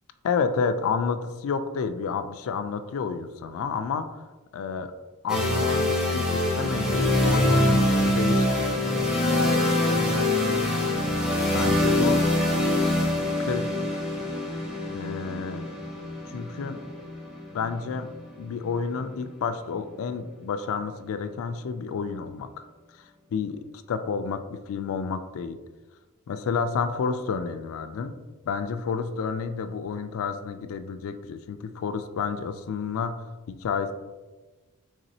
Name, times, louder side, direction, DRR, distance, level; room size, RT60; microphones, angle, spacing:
voice 1, 0.2-4.2 4.5-4.9 5.2-8.9 10.8-10.9 11.5-12.2 13.4-13.8 14.9-15.7 16.3-16.8 17.5-18.1 18.4-22.6 23.3-25.6 26.3-28.1 28.5-33.9, left 5 dB, 65° left, 9 dB, 0.3 m, -30 dB
sound 1, 5.3-19.1, left 1 dB, ahead, 0.7 m, -24 dB
4.0 x 3.5 x 2.7 m, 1.2 s
head